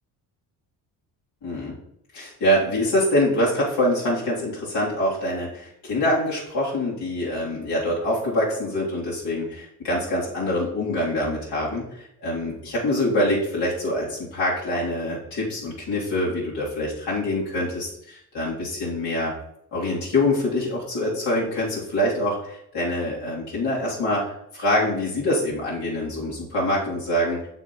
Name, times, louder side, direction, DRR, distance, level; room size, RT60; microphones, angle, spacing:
voice 1, 1.4-1.8 2.1-19.3 19.7-27.5, left 1 dB, 70° left, -7 dB, 3.0 m, -25 dB
9.6 x 6.7 x 3.0 m, 0.75 s
supercardioid pair, 70°, 43 cm